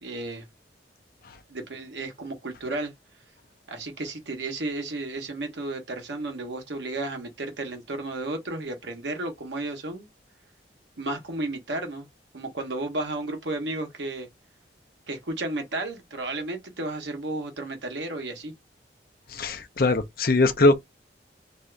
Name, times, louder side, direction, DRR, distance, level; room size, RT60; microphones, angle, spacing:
voice 1, 0.0-0.5 1.5-2.9 3.7-10.1 11.0-12.1 12.3-14.3 15.1-18.5, right 2 dB, 75° right, 1.0 m, -33 dB
voice 2, 19.3-20.8, left 2 dB, 50° left, 0.5 m, -21 dB
2.7 x 2.4 x 3.3 m
head